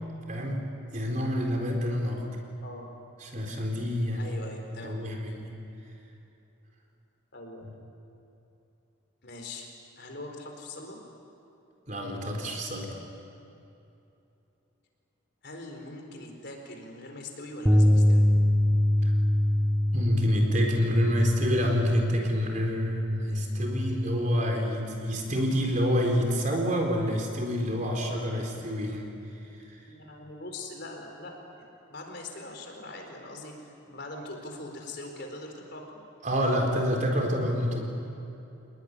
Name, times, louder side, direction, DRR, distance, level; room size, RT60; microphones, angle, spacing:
voice 1, 0.3-0.6 0.9-2.2 3.2-4.4 4.7-5.5 11.9-12.9 19.0-19.1 19.9-29.1 29.5-29.8 36.2-37.8, equal, 35° right, 1 dB, 4.3 m, -28 dB
voice 2, 2.6-2.9 4.2-5.0 7.3-7.7 9.2-9.7 10.0-11.0 15.4-18.2 29.9-36.0, left 2 dB, 50° left, 2 dB, 4.4 m, -42 dB
sound 1, 17.7-23.9, left 1 dB, 5° right, 1.1 m, -24 dB
28.5 x 20.5 x 10.0 m, 2.8 s
head